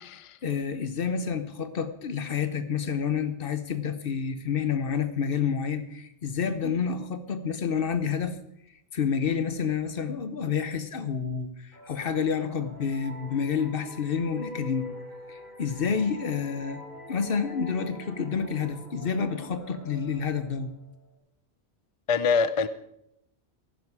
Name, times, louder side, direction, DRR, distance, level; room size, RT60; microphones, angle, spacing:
voice 1, 0.1-8.4 8.9-14.9 15.3-16.8 17.1-20.7, left 6 dB, 55° left, 11 dB, 1.0 m, -29 dB
sound 1, 11.7-21.1, left 1 dB, 65° right, 2.8 m, -45 dB
voice 2, 22.1-22.7, left 5 dB, 40° left, 13 dB, 0.5 m, -24 dB
14.5 x 10.5 x 4.8 m, 0.78 s
omnidirectional pair, 1.2 m